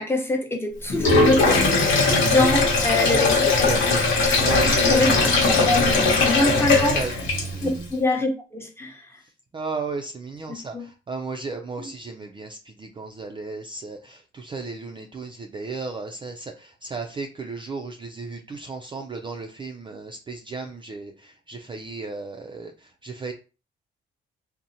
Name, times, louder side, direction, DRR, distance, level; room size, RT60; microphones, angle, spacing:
voice 1, 0.0-3.7 4.9-5.1 5.6-5.8 6.2-7.0 7.6-9.1 10.5-10.9 11.8-11.9, left 2 dB, 10° left, 0.7 m, -24 dB
Sink (filling or washing), 0.9-7.7, left 3 dB, 75° left, 1.0 m, -19 dB
voice 2, 3.1-3.9 4.4-5.7 6.2-7.2 7.5-7.9 9.5-23.3, right 4 dB, 25° right, 0.3 m, -35 dB
2.7 x 2.1 x 2.6 m
cardioid pair, 90°, 20 cm